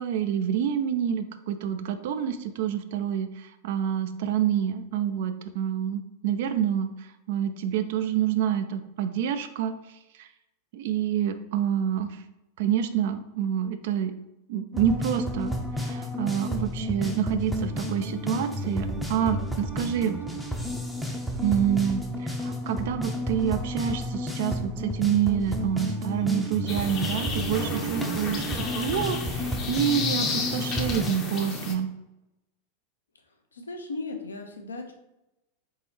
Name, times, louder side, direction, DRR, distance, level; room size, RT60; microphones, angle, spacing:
voice 1, 0.0-9.8 10.2-10.3 10.7-12.2 12.6-14.1 14.5-20.2 21.4-31.9, right 9 dB, 55° right, 9 dB, 0.4 m, -27 dB
sound 1, 14.7-31.1, equal, ahead, 0.6 m, -31 dB
voice 2, 20.0-20.4 33.5-34.9, left 3 dB, 75° left, 3 dB, 0.7 m, -37 dB
sound 2, 26.7-31.7, left 4 dB, 30° left, 0.7 m, -32 dB
4.1 x 3.6 x 3.2 m, 0.93 s
figure-of-eight pair, 90°, 0 cm